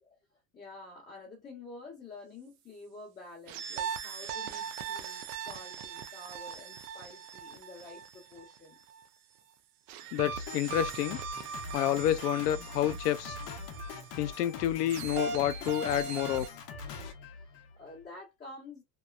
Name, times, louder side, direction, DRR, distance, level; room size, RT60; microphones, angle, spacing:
voice 1, 0.0-8.8 17.3-18.8, left 2 dB, 20° left, 1.0 m, -49 dB
sound 1, 3.5-9.1 9.9-16.5, right 6 dB, 65° right, 0.6 m, -40 dB
voice 2, 10.1-11.2 11.7-13.4 14.2-16.5, left 12 dB, 85° left, 0.6 m, -29 dB
Drum kit, 10.3-18.0, left 4 dB, 45° left, 0.7 m, -43 dB
3.0 x 2.1 x 2.3 m
supercardioid pair, 120°, 46 cm